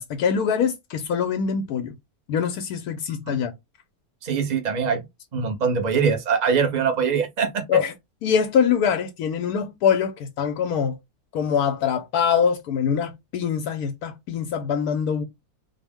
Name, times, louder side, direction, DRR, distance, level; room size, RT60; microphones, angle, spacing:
voice 1, 0.0-1.9 2.3-3.5 7.7-7.9 8.2-11.0 11.3-15.2, left 7 dB, 85° left, 1.1 m, -23 dB
voice 2, 4.2-5.0 5.3-7.8, right 6 dB, 40° right, 0.7 m, -23 dB
4.1 x 2.1 x 3.5 m
omnidirectional pair, 1.6 m